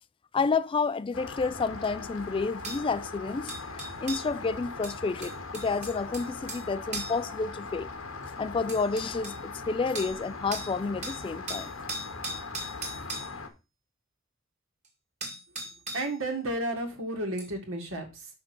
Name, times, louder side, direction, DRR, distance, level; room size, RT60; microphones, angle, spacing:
voice 1, 0.3-7.9 8.4-11.7, left 4 dB, 25° left, 0.3 m, -30 dB
Rain, 1.1-13.5, left 3 dB, 80° left, 1.2 m, -40 dB
sound 1, 1.8-1.9 2.6-2.8 3.5-4.3 4.8-6.7 6.9-7.2 8.2-8.3 8.7-9.4 10.0-10.2 10.5-10.7 11.0-13.3 14.8-14.9 15.2-16.1 17.4-17.5, right 2 dB, 35° right, 2.0 m, -38 dB
voice 2, 15.9-18.3, right 1 dB, 75° right, 2.0 m, -32 dB
5.7 x 5.1 x 6.0 m
head